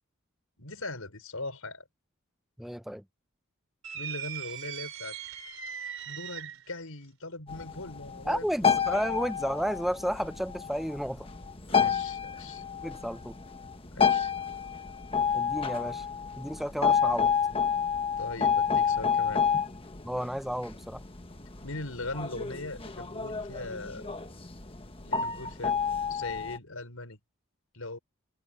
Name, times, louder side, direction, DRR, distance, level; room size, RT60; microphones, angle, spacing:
voice 1, 0.6-1.8 3.9-5.2 6.1-8.4 8.9-9.0 11.7-12.6 13.9-14.3 18.2-19.4 21.6-24.1 25.0-25.8 26.1-27.2 27.7-28.0, left 2 dB, 85° left, 5.4 m, -40 dB
voice 2, 2.6-3.0 8.3-11.3 12.8-13.4 15.3-16.1 16.4-17.3 20.0-21.0, equal, ahead, 0.6 m, -32 dB
sound 1, 3.8-6.7, right 9 dB, 70° right, 4.0 m, -39 dB
sound 2, 7.5-26.6, left 6 dB, 25° left, 1.3 m, -30 dB
head